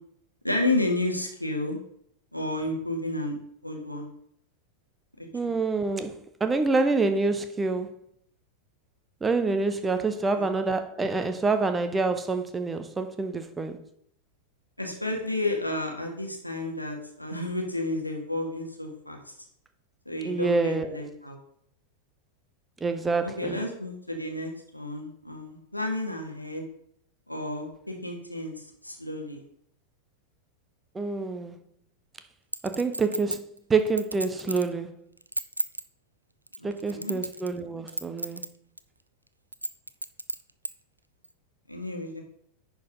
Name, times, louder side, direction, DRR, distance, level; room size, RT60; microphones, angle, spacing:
voice 1, 0.4-1.8 2.3-3.3 3.6-4.1 5.4-5.6 10.3-10.5 14.8-19.2 20.1-21.4 23.2-26.6 27.3-28.5 28.8-29.4 36.6-37.2 41.7-42.2, left 2 dB, 90° left, 1.8 m, -31 dB
voice 2, 5.3-7.9 9.2-13.8 20.2-21.0 22.8-23.7 30.9-31.6 32.6-33.4 33.7-35.0 36.6-38.5, right 3 dB, 15° right, 0.8 m, -27 dB
Chink clink, 32.5-34.7 35.2-35.8 36.5-37.6 37.9-38.5 38.8-38.9 39.5-40.7 41.2-41.3, right 2 dB, 85° right, 0.5 m, -32 dB
10.5 x 4.6 x 5.3 m
figure-of-eight pair, 90°, 0 cm